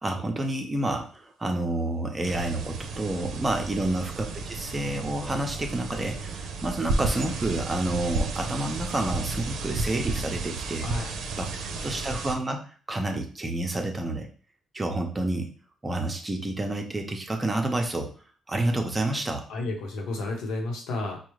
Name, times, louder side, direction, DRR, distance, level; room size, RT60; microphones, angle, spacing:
voice 1, 0.0-11.5 11.8-12.6 12.9-14.3 14.7-15.5 15.8-18.1 18.5-19.4, right 2 dB, 20° right, 3 dB, 0.8 m, -29 dB
sound 1, 2.2-12.4, right 3 dB, 80° right, 0.6 m, -32 dB
voice 2, 19.5-21.2, left 2 dB, 85° left, 1 dB, 1.0 m, -32 dB
4.7 x 2.3 x 3.2 m, 0.41 s
cardioid pair, 90°, 0 cm